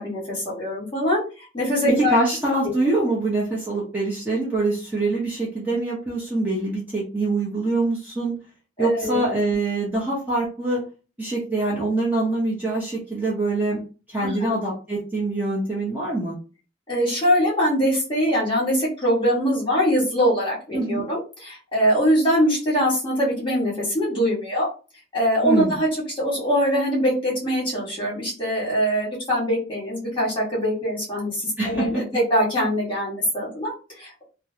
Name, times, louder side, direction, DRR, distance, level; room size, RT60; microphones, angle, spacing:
voice 1, 0.0-2.2 2.6-2.7 8.8-9.2 14.2-14.5 16.9-24.7 25.1-34.2, equal, 25° left, -5 dB, 1.4 m, -23 dB
voice 2, 2.0-8.3 8.8-10.8 11.2-13.8 14.1-16.4 20.7-21.0 25.4-25.8 31.6-32.0, right 2 dB, 10° right, -6 dB, 0.7 m, -24 dB
3.2 x 2.0 x 2.7 m, 0.35 s
head